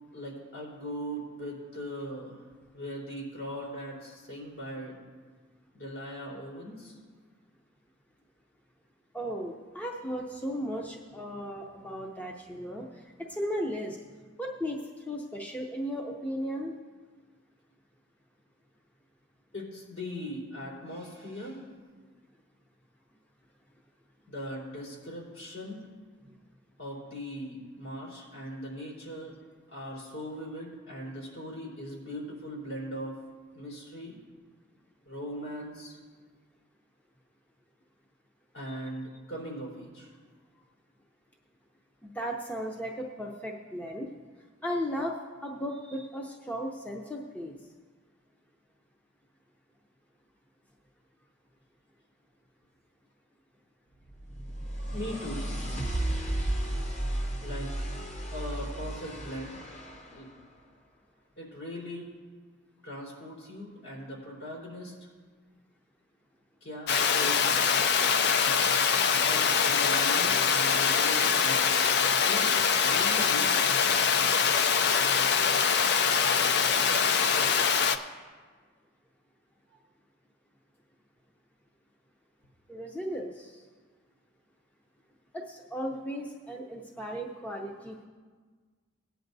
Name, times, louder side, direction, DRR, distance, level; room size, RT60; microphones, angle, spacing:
voice 1, 0.1-5.0 5.7-7.0 19.5-21.7 24.3-25.9 26.8-29.4 29.7-33.2 33.5-34.2 35.1-36.0 38.5-40.1 54.9-55.5 57.4-57.7 58.3-59.6 60.1-60.3 61.4-62.1 62.8-65.1 66.6-67.7 69.1-73.9, equal, 75° left, -5 dB, 3.8 m, -40 dB
voice 2, 9.1-14.0 14.4-16.8 38.7-38.8 42.0-44.1 44.6-47.6 82.7-83.6 85.3-88.0, equal, 5° left, 0 dB, 0.6 m, -36 dB
sound 1, 54.1-60.2, right 1 dB, 35° left, 1.0 m, -33 dB
Water, 66.9-78.0, left 6 dB, 50° left, 0.4 m, -24 dB
18.5 x 9.1 x 2.7 m, 1.5 s
head